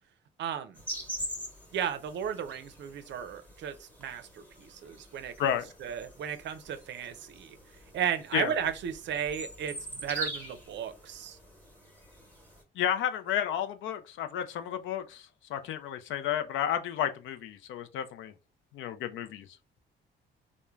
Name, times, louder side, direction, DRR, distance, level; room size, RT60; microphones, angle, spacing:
voice 1, 0.4-0.8 1.7-5.3 5.8-7.6 7.9-11.4, right 8 dB, 65° right, 0.5 m, -34 dB
sound 1, 0.8-12.6, equal, 5° left, 1.0 m, -44 dB
voice 2, 12.8-18.3 18.7-19.5, left 10 dB, 80° left, 0.4 m, -32 dB
3.1 x 2.1 x 2.3 m
cardioid pair, 90°, 20 cm